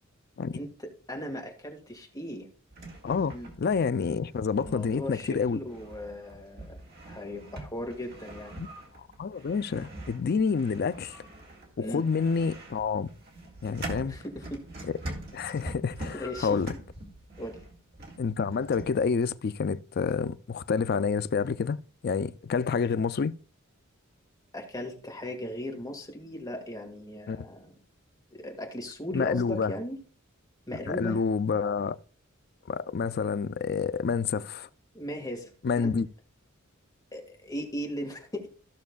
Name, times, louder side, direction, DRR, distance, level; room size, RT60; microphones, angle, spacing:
voice 1, 0.5-2.5 3.3-3.5 4.6-8.6 11.8-12.0 14.0-14.6 16.1-16.8 17.4-17.6 24.5-27.7 28.3-30.0 30.7-31.2 34.9-35.5 35.8-35.9 37.1-38.5, equal, 20° left, 1.8 m, -38 dB
sound 1, 2.7-19.0, right 1 dB, 50° right, 2.2 m, -44 dB
voice 2, 3.0-5.6 8.6-8.7 9.2-11.2 11.8-13.1 13.6-14.2 15.3-16.7 18.2-23.3 27.3-27.5 29.1-29.7 30.9-32.0 32.7-34.7 35.6-36.1, left 5 dB, 50° left, 0.4 m, -28 dB
15.0 x 6.3 x 2.3 m
head